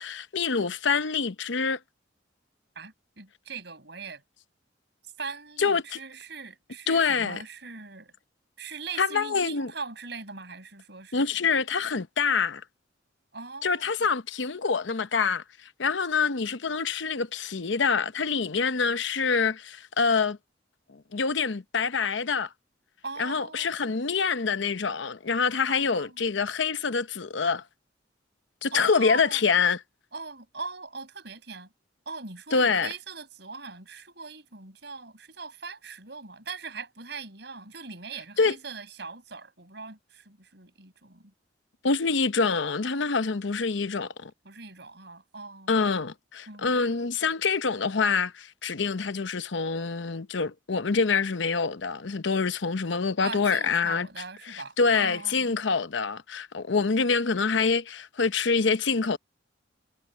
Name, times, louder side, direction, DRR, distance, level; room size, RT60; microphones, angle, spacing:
voice 1, 0.0-1.8 5.6-6.0 6.9-7.4 9.0-9.7 11.1-12.6 13.6-15.4 15.8-20.4 20.9-22.5 23.2-27.6 28.6-29.8 32.5-32.9 38.4-38.5 41.8-44.3 45.7-54.1 54.5-59.2, left 5 dB, 75° left, 0.8 m, -26 dB
voice 2, 2.7-4.2 5.0-8.1 8.6-11.3 13.3-13.9 23.0-23.7 25.7-26.2 28.7-29.5 30.1-31.7 32.0-41.3 44.4-45.9 46.5-46.8 53.2-55.6, right 4 dB, 60° right, 6.7 m, -41 dB
head